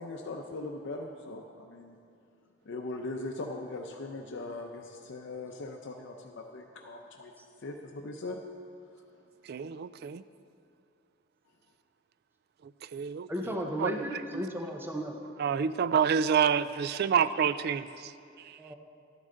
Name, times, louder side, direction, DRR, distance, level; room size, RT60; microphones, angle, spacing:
voice 1, 0.0-2.0 2.7-7.3 7.6-8.4, left 2 dB, 65° left, 2 dB, 0.6 m, -40 dB
voice 2, 9.5-10.2 12.9-13.3 13.8-13.9 14.3-14.4 15.4-18.1 18.4-18.6, right 7 dB, 55° right, 15 dB, 0.3 m, -28 dB
voice 3, 13.3-15.2 18.6-18.7, equal, 10° right, 2 dB, 0.6 m, -34 dB
12.0 x 9.9 x 3.8 m, 2.5 s
head